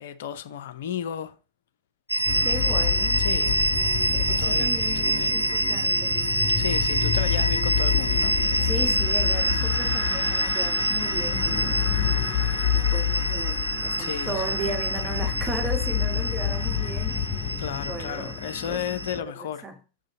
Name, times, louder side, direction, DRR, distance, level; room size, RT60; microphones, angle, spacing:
voice 1, 0.0-1.4 2.3-2.9 3.2-3.7 4.4-5.4 6.6-8.4 9.5-10.0 14.0-14.5 17.6-19.6, left 9 dB, 55° left, 0.7 m, -34 dB
sound 1, 2.1-19.2, right 1 dB, 90° left, 0.4 m, -27 dB
sound 2, 2.3-19.2, left 8 dB, 35° left, 1.3 m, -28 dB
voice 2, 2.4-3.3 4.1-6.2 8.6-11.8 12.7-17.2 17.8-18.4 18.7-18.8 19.2-19.8, right 3 dB, 20° right, 1.2 m, -36 dB
6.6 x 6.5 x 4.0 m
figure-of-eight pair, 90°, 0 cm